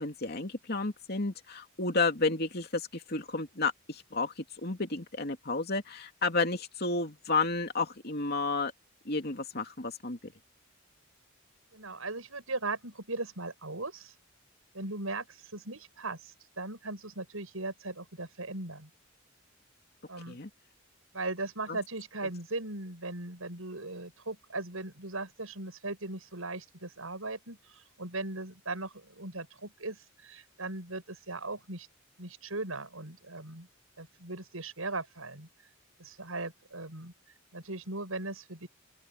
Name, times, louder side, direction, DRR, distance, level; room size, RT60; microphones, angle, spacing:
voice 1, 0.0-8.7 9.0-10.3 20.3-20.5 21.7-21.8, left 3 dB, 50° left, 2.9 m, -32 dB
voice 2, 11.7-14.1 14.7-18.9 20.1-20.4 21.1-31.9 32.2-33.7 34.0-35.5 36.0-37.1 37.5-38.7, right 2 dB, 85° right, 7.4 m, -38 dB
open air
head